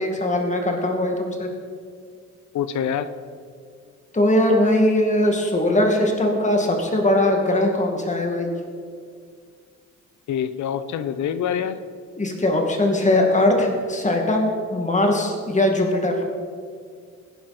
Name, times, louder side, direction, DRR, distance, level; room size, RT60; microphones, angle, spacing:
voice 1, 0.0-1.5 4.1-8.5 12.2-16.2, left 1 dB, 25° left, 2 dB, 2.4 m, -20 dB
voice 2, 2.5-3.1 10.3-11.8, left 8 dB, 70° left, 12 dB, 0.8 m, -25 dB
16.5 x 10.5 x 4.4 m, 2.1 s
cardioid pair, 90°, 30 cm